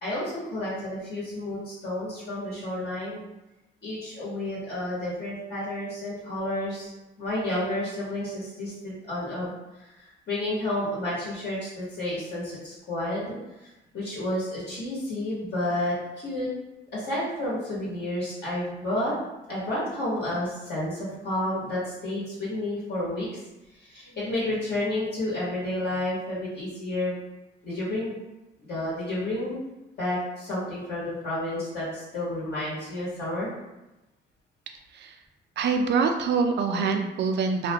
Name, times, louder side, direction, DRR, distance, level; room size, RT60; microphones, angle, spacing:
voice 1, 0.0-3.2 3.8-6.9 7.2-9.5 9.8-13.7 13.9-16.5 16.9-19.1 19.5-23.3 23.7-27.2 27.6-28.2 28.6-29.6 30.0-33.5, left 1 dB, 55° left, -8 dB, 1.2 m, -31 dB
voice 2, 35.6-37.7, right 5 dB, 60° right, 5 dB, 0.4 m, -25 dB
2.4 x 2.1 x 2.8 m, 0.98 s
cardioid pair, 90°, 20 cm